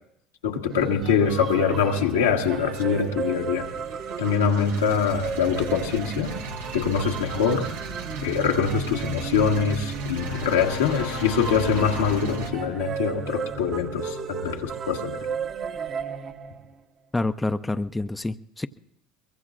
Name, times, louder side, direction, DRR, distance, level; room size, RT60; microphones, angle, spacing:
voice 1, 0.4-3.7 4.2-6.3 6.7-7.7 8.2-15.2, left 6 dB, 85° left, 1 dB, 1.5 m, -24 dB
sound 1, 0.7-16.7, right 5 dB, 45° right, 1.1 m, -34 dB
sound 2, 1.2-12.5, right 2 dB, 85° right, 1.5 m, -38 dB
sound 3, 10.2-13.0, left 11 dB, 70° left, 0.9 m, -35 dB
voice 2, 17.1-18.7, left 2 dB, 10° left, 10 dB, 0.5 m, -27 dB
23.0 x 22.5 x 2.5 m, 0.72 s
hypercardioid pair, 75°, 0 cm